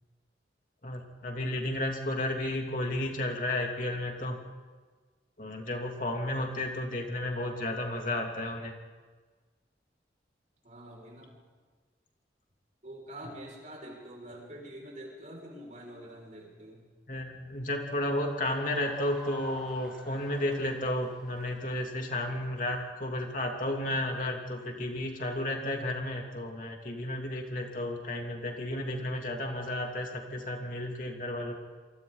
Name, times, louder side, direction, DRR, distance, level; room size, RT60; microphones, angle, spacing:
voice 1, 0.8-4.4 5.4-8.7 17.1-31.5, left 1 dB, 50° left, 1 dB, 2.9 m, -33 dB
voice 2, 10.6-11.3 12.8-16.8, right 1 dB, 45° right, -1 dB, 6.0 m, -46 dB
sound 1, 18.1-22.8, equal, 5° right, 7.1 m, -50 dB
28.0 x 24.0 x 4.1 m, 1.4 s
head